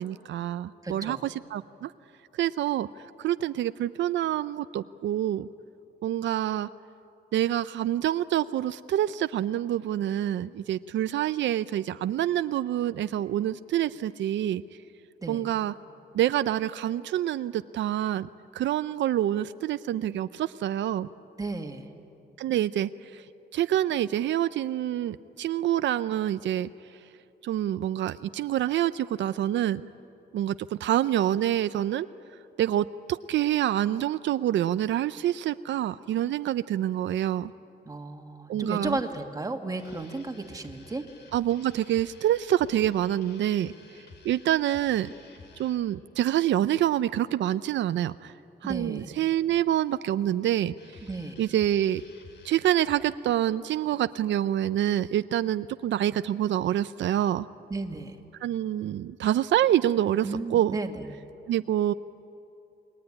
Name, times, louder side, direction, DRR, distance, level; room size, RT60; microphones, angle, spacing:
voice 1, 0.0-1.9 2.4-2.9 3.2-5.5 6.0-6.7 7.3-14.6 15.3-15.7 16.1-21.1 22.4-23.2 23.5-26.7 27.4-29.8 30.3-32.1 32.6-37.5 38.5-39.0 41.3-43.7 44.2-45.1 45.6-48.3 48.6-50.7 51.4-52.0 52.4-57.5 58.4-60.8 61.5-61.9, right 12 dB, 85° right, 13 dB, 0.5 m, -26 dB
voice 2, 0.8-1.2 15.2-15.4 21.4-21.9 37.9-41.0 48.6-49.1 51.0-51.4 57.7-58.2 60.2-61.1, right 3 dB, 20° right, 5 dB, 1.8 m, -34 dB
sound 1, 39.8-45.8 50.8-53.1, left 4 dB, 70° left, 2.7 m, -52 dB
28.5 x 20.0 x 9.8 m, 2.7 s
cardioid pair, 130°, 19 cm